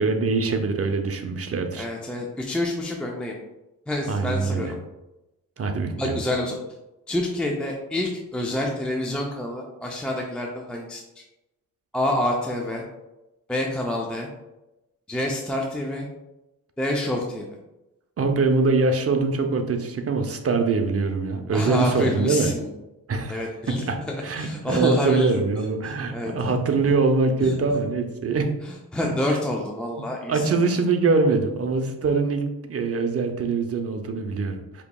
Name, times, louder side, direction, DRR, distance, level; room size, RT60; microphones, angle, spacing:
voice 1, 0.0-1.9 4.1-4.7 5.6-6.2 18.2-22.5 23.1-28.5 29.0-29.4 30.3-32.4 32.7-34.8, right 4 dB, 40° right, 5 dB, 0.6 m, -23 dB
voice 2, 1.8-3.4 3.9-4.8 5.9-6.5 7.1-11.0 11.9-12.8 13.5-14.3 15.1-16.1 16.8-17.5 21.5-22.7 23.3-25.4 25.8-26.5 27.4-27.5 28.6-30.5, left 1 dB, 5° left, -1 dB, 0.4 m, -27 dB
4.9 x 3.0 x 2.2 m, 0.98 s
cardioid pair, 75°, 35 cm